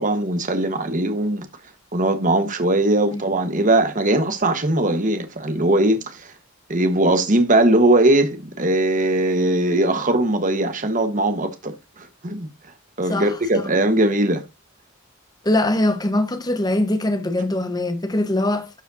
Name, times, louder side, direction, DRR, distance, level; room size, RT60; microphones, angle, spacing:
voice 1, 0.0-1.5 1.9-6.3 6.7-12.5 13.0-14.4, right 1 dB, 40° right, 1.3 m, -20 dB
voice 2, 13.1-13.7 15.4-18.7, left 1 dB, 20° left, 1.1 m, -22 dB
12.5 x 5.1 x 2.7 m
head